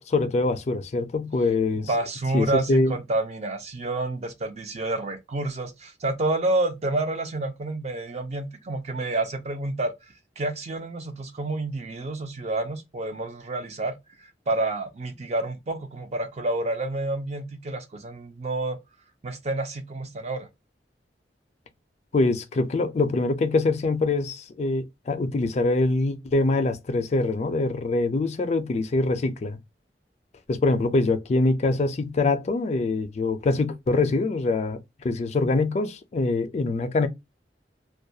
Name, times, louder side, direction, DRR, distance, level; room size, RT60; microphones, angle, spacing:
voice 1, 0.1-1.9 2.3-2.9 22.1-29.6 30.5-34.8 35.0-37.1, left 3 dB, 40° left, 0.3 m, -24 dB
voice 2, 1.8-9.9 10.4-13.9 14.5-18.8 19.2-20.5, right 2 dB, 40° right, 0.5 m, -29 dB
2.3 x 2.1 x 2.6 m
head